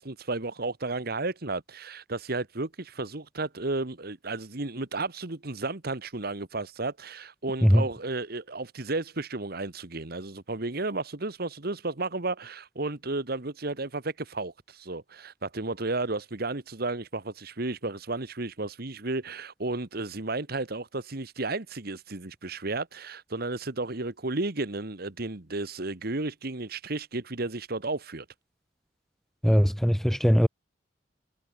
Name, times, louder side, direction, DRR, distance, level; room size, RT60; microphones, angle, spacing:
voice 1, 0.0-28.2, right 2 dB, 55° right, 1.7 m, -33 dB
voice 2, 29.4-30.5, equal, ahead, 0.8 m, -20 dB
head